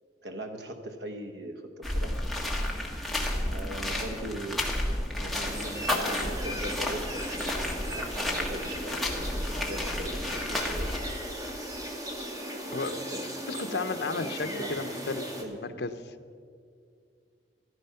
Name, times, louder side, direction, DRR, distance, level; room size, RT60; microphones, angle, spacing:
voice 1, 0.2-2.3 3.5-4.7 5.2-11.0 12.7-13.4 13.7-14.7 15.4-15.8, right 1 dB, 80° right, 5 dB, 1.0 m, -40 dB
sound 1, 1.8-11.0, left 1 dB, ahead, 1.5 m, -32 dB
sound 2, 5.4-15.4, equal, 20° right, 1.4 m, -37 dB
voice 2, 13.5-15.3 15.6-16.1, left 3 dB, 75° left, 8 dB, 0.8 m, -33 dB
14.5 x 12.5 x 5.7 m, 2.2 s
head